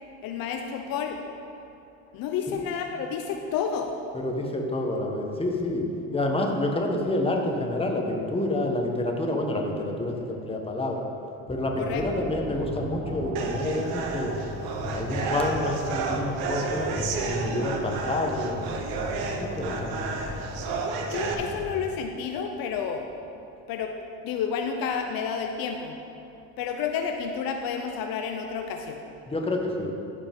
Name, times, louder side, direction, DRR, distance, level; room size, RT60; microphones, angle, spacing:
voice 1, 0.2-1.2 2.1-4.0 11.8-12.0 21.1-23.1 23.7-24.0 24.2-26.0 26.6-29.0, left 6 dB, 60° left, 4 dB, 0.7 m, -30 dB
voice 2, 4.2-11.0 11.5-14.3 14.9-18.7 19.3-20.0 21.0-21.1 29.3-29.9, left 1 dB, 15° left, 1 dB, 1.3 m, -28 dB
sound 1, 11.7-21.6, equal, 25° right, 1.6 m, -36 dB
sound 2, 13.4-21.3, right 4 dB, 65° right, 1.0 m, -32 dB
14.0 x 5.1 x 3.7 m, 2.7 s
supercardioid pair, 90°, 38 cm